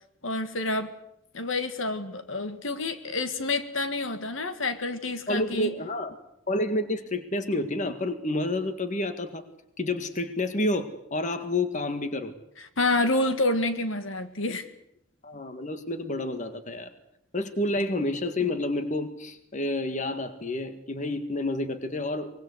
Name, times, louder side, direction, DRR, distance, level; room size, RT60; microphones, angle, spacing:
voice 1, 0.2-0.9 1.3-5.7 12.6-14.7, left 2 dB, 70° left, 9 dB, 1.9 m, -28 dB
voice 2, 5.3-6.1 6.5-9.4 9.8-12.3 15.2-16.9 17.3-22.3, left 1 dB, 35° left, 9 dB, 1.9 m, -29 dB
24.0 x 21.5 x 8.1 m, 0.76 s
head